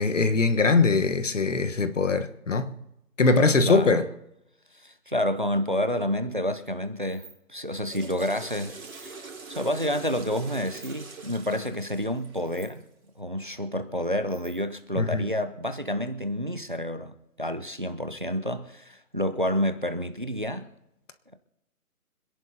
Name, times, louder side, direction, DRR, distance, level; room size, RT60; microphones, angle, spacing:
voice 1, 0.0-2.7 3.2-4.0 15.0-15.3, left 3 dB, 55° left, 1.3 m, -22 dB
voice 2, 3.6-4.0 4.7-12.8 13.2-20.7, equal, 35° right, 0.6 m, -29 dB
sound 1, 6.8-7.4 7.7-8.0 8.4-9.1 10.5-11.0 11.7-11.9 12.1-12.8 13.9-14.8, right 3 dB, 5° right, 3.4 m, -52 dB
Water / Toilet flush, 7.6-12.9, right 4 dB, 65° right, 2.6 m, -43 dB
26.5 x 10.5 x 2.8 m
hypercardioid pair, 175°, 46 cm